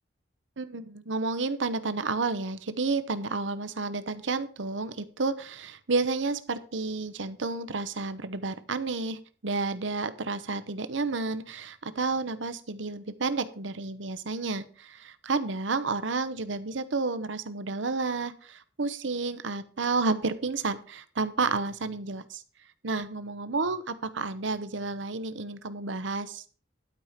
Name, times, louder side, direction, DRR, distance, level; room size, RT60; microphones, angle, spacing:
voice 1, 0.6-22.4 22.8-26.4, right 3 dB, 75° right, 12 dB, 0.9 m, -31 dB
12.0 x 5.0 x 5.9 m, 0.40 s
head